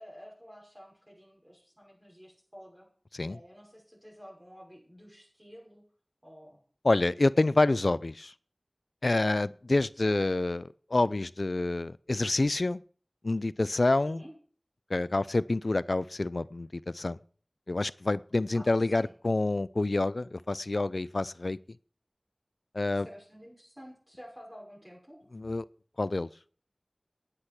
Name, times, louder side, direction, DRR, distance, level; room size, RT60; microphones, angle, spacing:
voice 1, 0.0-2.9 3.3-5.8 6.2-6.6 10.0-10.1 14.1-14.3 18.5-19.1 22.9-25.2, equal, 15° right, -4 dB, 5.8 m, -50 dB
voice 2, 6.8-8.3 9.0-12.8 13.2-14.2 14.9-17.2 17.7-21.6 22.7-23.1 25.3-25.6 26.0-26.3, left 2 dB, 85° left, 18 dB, 0.5 m, -27 dB
10.0 x 9.8 x 6.1 m, 0.44 s
wide cardioid pair, 40°, 0 cm